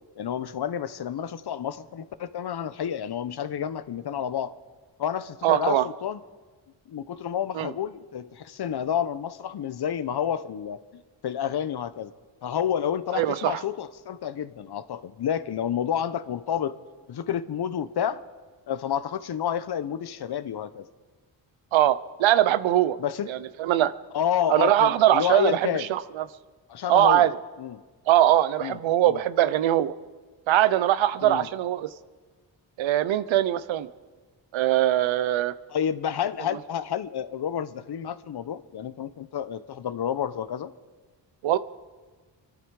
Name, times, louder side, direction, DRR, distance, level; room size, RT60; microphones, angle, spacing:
voice 1, 0.2-4.5 5.0-6.2 6.9-12.1 12.4-16.8 17.1-18.2 18.7-20.9 23.0-23.3 24.1-25.9 26.7-27.3 27.6-27.8 28.6-28.8 29.1-29.2 31.2-31.5 35.7-40.7, left 9 dB, 60° left, 14 dB, 0.9 m, -29 dB
voice 2, 5.4-5.8 7.5-7.7 13.1-13.6 21.7-23.0 23.3-23.9 24.5-26.3 26.9-27.3 28.1-29.9 30.5-31.9 32.8-33.9 34.5-35.5 41.4-41.6, right 13 dB, 85° right, 15 dB, 0.8 m, -22 dB
25.0 x 12.0 x 4.8 m, 1.4 s
cardioid pair, 65°, 45 cm